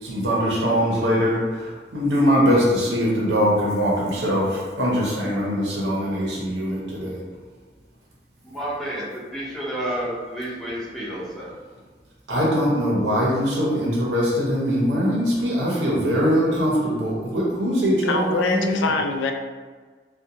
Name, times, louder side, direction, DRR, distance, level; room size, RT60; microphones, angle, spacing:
voice 1, 0.0-7.2 12.3-18.9, equal, 80° right, -5 dB, 0.6 m, -22 dB
voice 2, 8.4-11.5, right 1 dB, ahead, -8 dB, 0.6 m, -30 dB
voice 3, 18.1-19.3, left 3 dB, 90° left, 5 dB, 0.3 m, -24 dB
2.4 x 2.2 x 2.8 m, 1.5 s
head